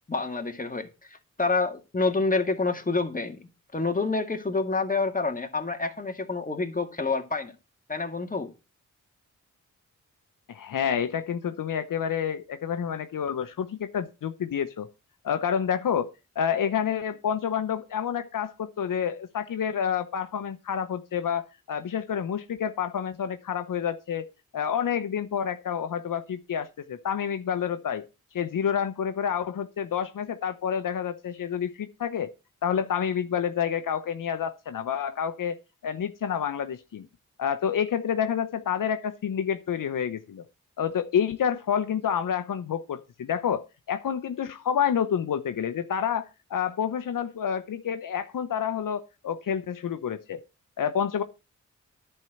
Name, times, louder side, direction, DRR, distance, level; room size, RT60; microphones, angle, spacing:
voice 1, 0.1-1.1 1.4-3.4 3.7-7.5 7.9-8.5, left 3 dB, 25° left, 2.0 m, -28 dB
voice 2, 10.5-14.9 15.2-16.1 16.4-24.3 24.5-28.0 28.3-32.3 32.6-35.6 35.8-37.1 37.4-40.5 40.8-50.4 50.8-51.2, left 8 dB, 80° left, 0.9 m, -28 dB
10.5 x 4.5 x 7.8 m
cardioid pair, 60°, 32 cm